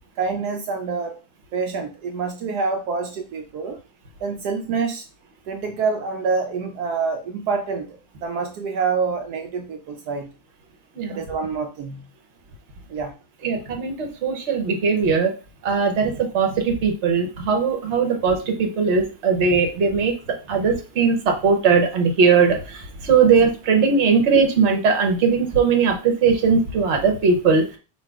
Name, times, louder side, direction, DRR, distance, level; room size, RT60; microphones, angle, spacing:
voice 1, 0.2-1.2 1.5-3.8 4.2-5.1 5.5-10.3 11.1-12.0 12.9-13.2, right 5 dB, 75° right, 4 dB, 1.1 m, -26 dB
voice 2, 13.4-15.3 15.6-27.8, right 5 dB, 45° right, 3 dB, 1.1 m, -19 dB
4.0 x 2.7 x 4.5 m, 0.32 s
omnidirectional pair, 1.8 m